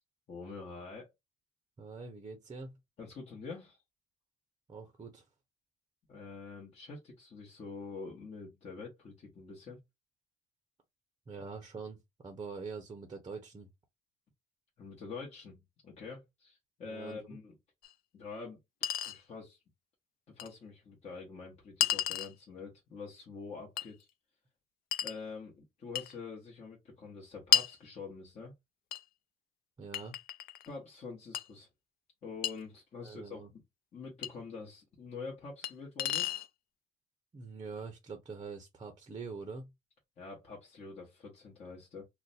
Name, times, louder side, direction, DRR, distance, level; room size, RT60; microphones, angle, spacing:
voice 1, 0.3-1.1 3.0-3.8 6.1-9.8 14.8-17.5 18.1-19.6 20.3-24.1 25.0-28.5 30.7-31.7 32.2-33.6 33.9-36.3 40.2-42.0, left 4 dB, 40° left, 1.0 m, -46 dB
voice 2, 1.8-2.8 4.7-5.2 11.3-13.7 16.8-17.3 29.8-30.2 33.0-33.5 37.3-39.7, right 4 dB, 25° right, 0.6 m, -44 dB
Chink clink, 17.8-17.9 18.8-19.2 20.4-20.5 21.8-22.3 23.8-23.9 24.9-25.2 25.9-26.1 27.5-27.7 28.9-29.0 29.9-30.7 31.3-31.4 32.4-32.5 34.2-34.3 35.6-35.7 36.0-36.5, left 11 dB, 60° left, 0.4 m, -31 dB
2.4 x 2.1 x 3.9 m
cardioid pair, 110°, 17 cm